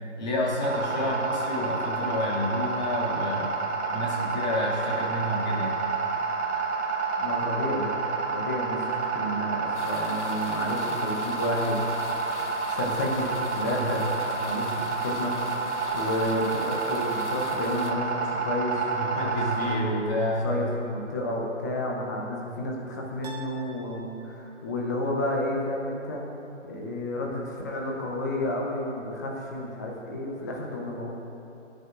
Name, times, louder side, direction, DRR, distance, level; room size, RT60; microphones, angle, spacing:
voice 1, 0.2-3.6 3.9-5.8 13.7-13.9 14.5-14.8 18.9-20.5 22.2-22.3, left 1 dB, 35° left, -5 dB, 2.3 m, -29 dB
sound 1, 0.6-19.8, right 4 dB, 65° right, 1.7 m, -29 dB
voice 2, 7.2-7.9 8.3-8.8 9.1-11.8 12.8-14.0 14.4-15.3 15.9-18.8 19.2-26.2 26.6-31.1, left 1 dB, 15° left, -1 dB, 0.7 m, -31 dB
sound 2, 9.7-17.9, left 3 dB, 70° left, 1.1 m, -44 dB
sound 3, 20.6-21.4 23.2-24.7, right 2 dB, 35° right, 1.0 m, -47 dB
19.0 x 10.0 x 2.5 m, 2.9 s
figure-of-eight pair, 145°, 37 cm